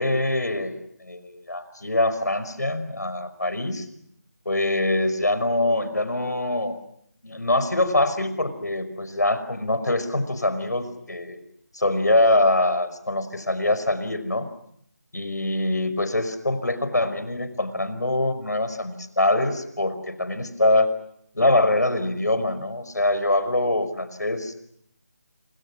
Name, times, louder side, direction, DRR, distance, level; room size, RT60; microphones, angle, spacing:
voice 1, 0.0-3.9 4.5-6.8 7.2-11.4 11.7-14.5 15.1-20.9 21.3-24.6, left 1 dB, 90° left, 11 dB, 5.5 m, -24 dB
28.5 x 28.5 x 6.2 m, 0.71 s
figure-of-eight pair, 165°, 9 cm